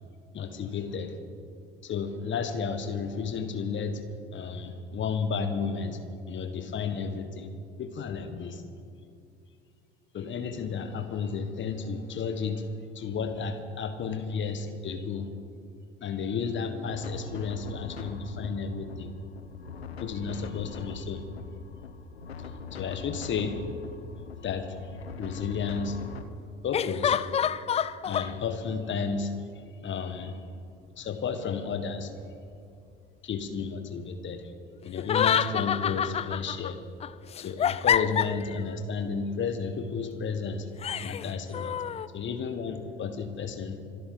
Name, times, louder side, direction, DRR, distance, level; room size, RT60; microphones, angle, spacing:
voice 1, 0.3-1.2 1.8-6.0 6.3-7.5 7.8-8.6 10.1-15.3 16.0-19.1 20.0-21.2 22.4-23.6 24.4-24.9 25.2-26.0 26.6-27.2 28.0-30.4 31.0-32.1 33.2-34.5 34.8-36.8 37.4-40.7 41.0-41.8 42.1-43.8, left 5 dB, 40° left, 8 dB, 1.4 m, -32 dB
sound 1, 16.9-26.2, left 4 dB, 85° left, 0.8 m, -41 dB
sound 2, 23.6-23.7 26.7-28.3 35.0-36.7 37.0-38.6 40.8-42.1, left 8 dB, 20° left, 0.4 m, -27 dB
26.5 x 12.0 x 3.9 m, 2.4 s
figure-of-eight pair, 55°, 30 cm